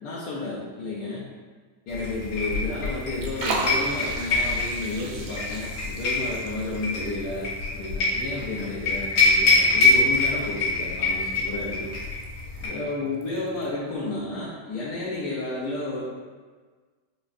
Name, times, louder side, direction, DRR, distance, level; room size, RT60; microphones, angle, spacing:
voice 1, 0.0-1.2 1.9-11.9 12.6-16.0, left 2 dB, 70° left, -8 dB, 1.0 m, -32 dB
sound 1, 1.9-12.7, left 3 dB, 90° left, 2.1 m, -25 dB
Liquid, 2.3-13.7, right 3 dB, 75° right, 1.4 m, -39 dB
5.9 x 2.4 x 2.5 m, 1.4 s
omnidirectional pair, 2.3 m